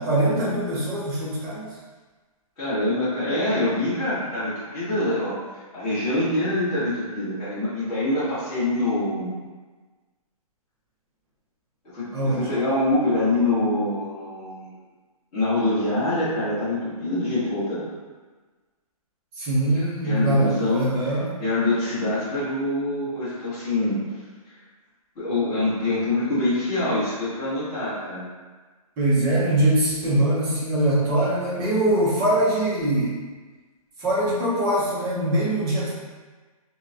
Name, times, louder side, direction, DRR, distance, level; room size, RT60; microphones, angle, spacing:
voice 1, 0.0-1.7 12.1-12.5 19.4-21.3 29.0-33.1 34.0-35.9, right 1 dB, 15° right, -8 dB, 0.7 m, -22 dB
voice 2, 2.6-5.3 5.7-9.3 11.9-14.7 15.3-17.9 19.7-21.1 21.4-24.0 25.1-28.3, left 2 dB, 20° left, -14 dB, 1.5 m, -25 dB
4.5 x 2.2 x 2.5 m, 1.3 s
hypercardioid pair, 165°, 19 cm